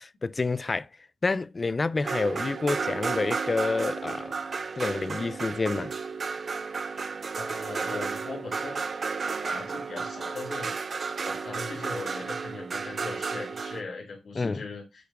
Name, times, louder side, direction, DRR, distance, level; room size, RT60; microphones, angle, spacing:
voice 1, 0.2-0.9 1.2-4.3 4.8-5.9 14.4-14.6, left 3 dB, 30° left, 0.3 m, -28 dB
sound 1, 2.0-13.8, right 5 dB, 50° right, 0.6 m, -33 dB
voice 2, 7.3-8.8 9.4-15.1, left 3 dB, 75° left, 2.5 m, -40 dB
8.4 x 3.6 x 3.5 m
wide cardioid pair, 140°, 0 cm